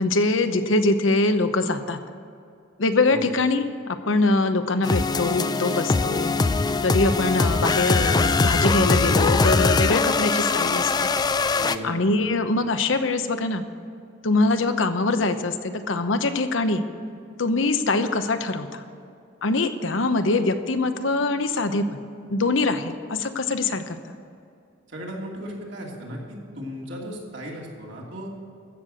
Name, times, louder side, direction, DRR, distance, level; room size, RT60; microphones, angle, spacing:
voice 1, 0.0-2.0 2.8-6.3 6.8-11.1 11.8-13.6 14.2-16.8 17.4-18.8 19.4-21.9 22.3-24.2, left 2 dB, 85° left, 9 dB, 0.9 m, -23 dB
sound 1, 4.8-11.8, left 4 dB, 20° left, 0.3 m, -22 dB
voice 2, 11.5-12.0 24.9-28.3, equal, 70° right, -2 dB, 2.9 m, -36 dB
15.0 x 6.8 x 7.7 m, 2.4 s
head